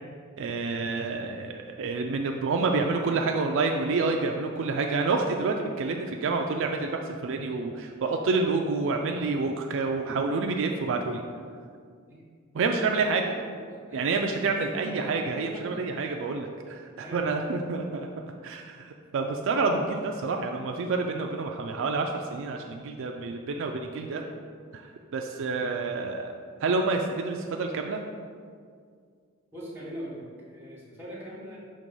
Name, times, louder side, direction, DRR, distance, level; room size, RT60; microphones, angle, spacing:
voice 1, 0.4-11.2 12.5-13.3 13.9-18.1 18.4-24.2 24.7-24.9 25.1-26.3 26.6-28.0, right 3 dB, 60° right, 3 dB, 0.4 m, -28 dB
voice 2, 13.5-14.1 14.5-16.2 17.0-17.5 17.9-18.1 24.0-24.4 25.7-25.9 29.5-31.6, equal, 10° right, -7 dB, 1.5 m, -43 dB
6.4 x 3.0 x 5.4 m, 2.1 s
head